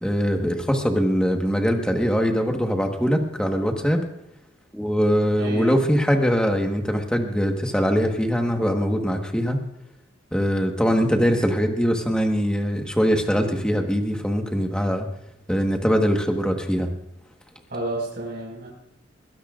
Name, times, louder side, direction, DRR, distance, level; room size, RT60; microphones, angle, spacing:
voice 1, 0.0-4.0 4.7-9.6 10.3-15.1 15.5-16.9, equal, 5° left, 3 dB, 1.4 m, -22 dB
voice 2, 5.4-5.7 17.7-18.7, right 1 dB, 55° right, -3 dB, 5.3 m, -30 dB
21.5 x 17.0 x 2.5 m, 0.77 s
head